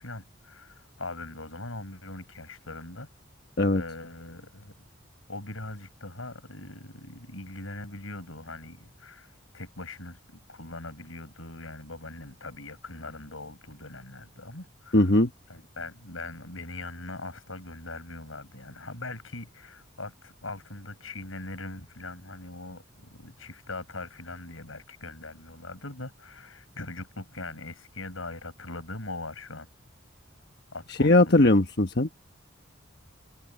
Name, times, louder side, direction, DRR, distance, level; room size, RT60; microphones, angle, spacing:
voice 1, 0.0-3.1 3.7-4.7 5.3-15.1 15.5-29.7 30.7-31.5, left 2 dB, 85° left, 7.6 m, -41 dB
voice 2, 14.9-15.3 30.9-32.1, left 2 dB, 55° left, 1.2 m, -20 dB
head